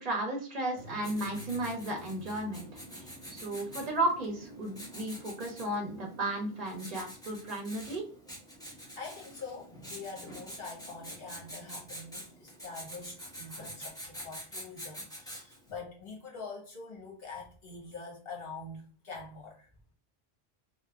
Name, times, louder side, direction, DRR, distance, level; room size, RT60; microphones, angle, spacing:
voice 1, 0.0-2.7 3.0-8.0, right 1 dB, 45° right, 1 dB, 0.6 m, -34 dB
Writing, 0.8-15.7, equal, 5° left, 0.6 m, -46 dB
voice 2, 8.6-19.7, left 4 dB, 65° left, -1 dB, 1.2 m, -45 dB
3.3 x 2.1 x 2.3 m, 0.41 s
omnidirectional pair, 1.1 m